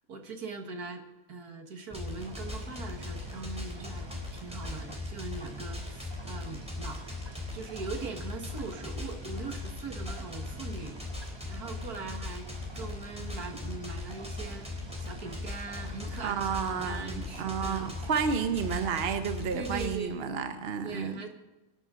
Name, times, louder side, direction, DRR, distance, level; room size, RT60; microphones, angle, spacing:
voice 1, 0.1-1.0 1.3-4.1 4.3-7.1 7.5-10.9 11.5-12.5 12.7-14.7 15.0-18.0 19.5-20.3 20.8-21.3, right 4 dB, 75° right, 4 dB, 2.2 m, -41 dB
sound 1, 1.9-20.0, left 2 dB, 5° right, 3.5 m, -39 dB
sound 2, 2.2-19.2, right 2 dB, 20° right, 1.1 m, -51 dB
voice 2, 16.2-21.3, right 6 dB, 45° right, 8 dB, 1.1 m, -31 dB
25.5 x 11.0 x 3.8 m, 1.1 s
omnidirectional pair, 1.6 m